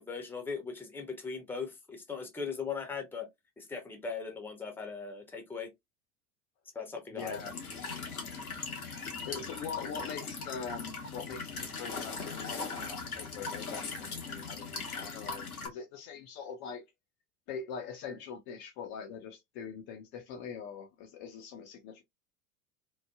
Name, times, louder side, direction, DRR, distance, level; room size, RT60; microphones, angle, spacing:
voice 1, 0.0-3.3 3.6-5.7 6.7-7.4 7.9-8.0, left 5 dB, 5° left, 0.7 m, -39 dB
voice 2, 7.1-7.5 9.2-16.8 17.5-22.0, left 6 dB, 40° left, 0.6 m, -43 dB
Walk footsteps / Chirp tweet / Stream, 7.2-15.7, left 4 dB, 85° left, 1.0 m, -39 dB
3.0 x 2.2 x 2.2 m
figure-of-eight pair, 85°, 43 cm